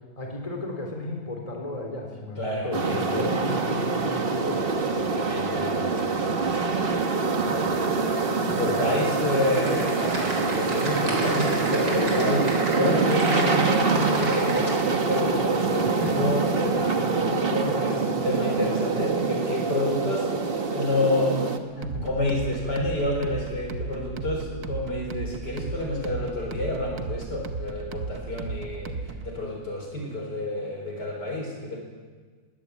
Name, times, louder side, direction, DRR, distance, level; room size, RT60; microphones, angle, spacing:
voice 1, 0.2-4.7 15.9-16.3 21.8-22.1, left 2 dB, 15° left, 1 dB, 3.7 m, -34 dB
voice 2, 2.4-3.4 5.0-6.8 7.3-7.7 8.4-31.8, left 1 dB, 60° left, 1 dB, 5.1 m, -29 dB
sound 1, 2.7-21.6, right 4 dB, 35° right, 1.3 m, -25 dB
Typing, 9.5-14.7, right 2 dB, 75° right, 4.9 m, -34 dB
sound 2, 21.8-29.3, right 4 dB, 55° right, 1.6 m, -35 dB
22.0 x 17.0 x 8.5 m, 1.5 s
omnidirectional pair, 2.1 m